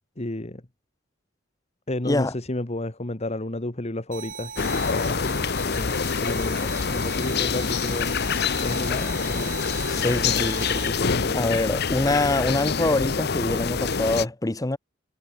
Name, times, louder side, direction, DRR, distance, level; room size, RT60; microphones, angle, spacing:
voice 1, 0.2-0.6 1.9-11.5, left 1 dB, 35° left, 1.6 m, -32 dB
sound 1, 4.1-10.9, right 7 dB, 45° right, 5.8 m, -39 dB
sound 2, 4.6-14.2, left 5 dB, 60° left, 0.9 m, -26 dB
voice 2, 9.9-10.6 11.3-14.8, left 2 dB, 20° left, 0.7 m, -24 dB
head